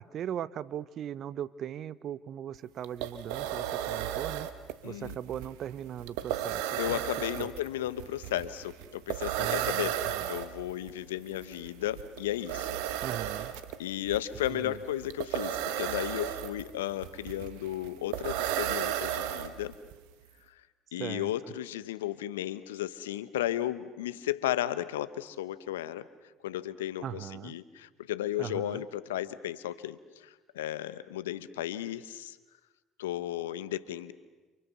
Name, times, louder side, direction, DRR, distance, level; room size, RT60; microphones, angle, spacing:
voice 1, 0.0-4.5 4.8-7.0 7.4-7.5 9.4-10.3 13.0-13.5 14.5-14.8 21.0-21.5 27.0-27.5 28.4-28.8, right 10 dB, 55° right, 18 dB, 0.9 m, -39 dB
sound 1, 2.5-2.6 2.8-19.9, right 11 dB, 75° right, 1.4 m, -34 dB
voice 2, 4.8-5.1 6.8-10.0 10.3-12.8 13.8-19.7 20.9-26.1 26.4-32.4 33.0-34.1, left 13 dB, 85° left, 15 dB, 1.0 m, -34 dB
30.0 x 27.5 x 6.9 m, 1.2 s
hypercardioid pair, 65°, 0 cm